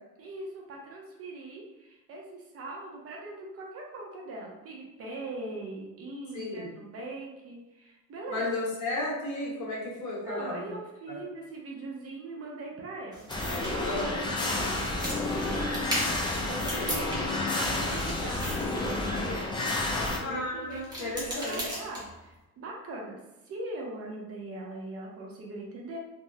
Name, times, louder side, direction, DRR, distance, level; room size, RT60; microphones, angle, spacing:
voice 1, 0.2-8.7 10.2-19.5 19.9-23.2 23.4-26.0, right 2 dB, 40° right, -1 dB, 0.6 m, -41 dB
voice 2, 6.3-6.7 8.3-10.8 11.1-11.2 13.8-14.2 20.2-21.6, left 2 dB, 55° left, -4 dB, 1.1 m, -34 dB
sound 1, 13.1-17.5 17.8-20.1 20.6-22.3, equal, 10° right, 0.9 m, -38 dB
sound 2, 13.3-20.2, left 2 dB, 15° left, 0.3 m, -30 dB
3.5 x 2.0 x 2.6 m, 1.0 s
cardioid pair, 145°, 35 cm